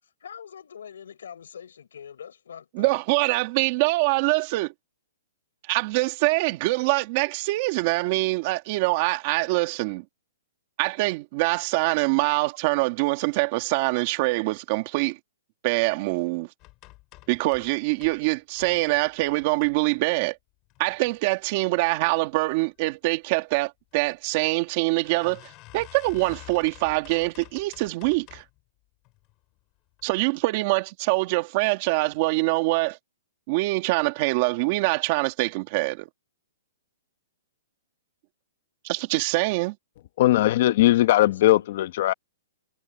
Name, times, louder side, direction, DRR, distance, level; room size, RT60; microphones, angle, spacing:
voice 1, 0.2-3.0 41.1-41.7, left 8 dB, 80° left, 6.1 m, -43 dB
voice 2, 2.7-4.7 5.7-10.0 10.8-15.2 15.6-16.5 17.3-20.4 20.8-28.4 30.0-33.0 33.5-36.1 38.8-39.8, right 23 dB, 30° right, 2.4 m, -24 dB
sound 1, 16.6-18.2 18.5-20.2 20.6-21.3 21.7-22.1 22.4-22.5 22.8-22.9 23.9-24.0 24.4-24.5 25.0-28.6 29.0-29.5 29.9-30.1 30.4-30.5, left 22 dB, 25° left, 6.9 m, -49 dB
voice 3, 40.2-42.1, left 15 dB, 40° left, 1.3 m, -19 dB
hypercardioid pair, 170°, 0 cm